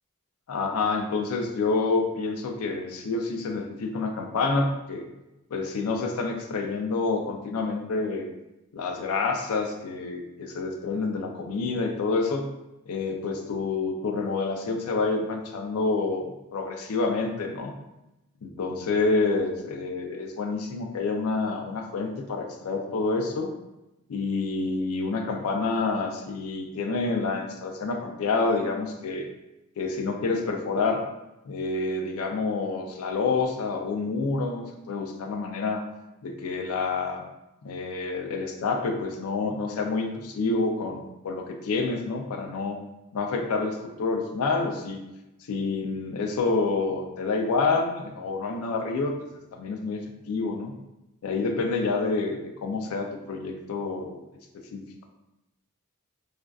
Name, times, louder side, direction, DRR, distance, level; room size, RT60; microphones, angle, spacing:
voice 1, 0.5-5.0 5.5-8.3 8.7-12.5 12.9-17.7 18.4-23.5 24.1-29.3 29.8-31.0 31.5-35.8 36.2-37.2 37.6-42.8 43.1-45.0 45.5-49.2 49.5-50.7 51.2-54.3 54.5-55.0, left 3 dB, 75° left, 4 dB, 0.4 m, -28 dB
2.4 x 2.2 x 2.3 m, 0.94 s
head